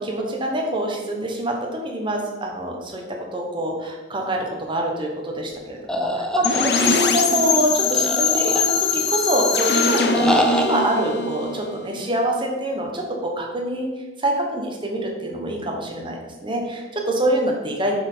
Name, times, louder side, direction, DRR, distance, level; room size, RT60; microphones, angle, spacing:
voice 1, 0.0-3.0 3.3-13.9 14.2-18.0, right 1 dB, 25° right, 0 dB, 1.2 m, -25 dB
sound 1, 5.9-7.2 7.9-9.1 10.1-10.9, left 1 dB, 5° left, 0.5 m, -25 dB
sound 2, 6.4-12.2, left 4 dB, 60° left, 0.7 m, -22 dB
6.1 x 4.3 x 5.7 m, 1.2 s
head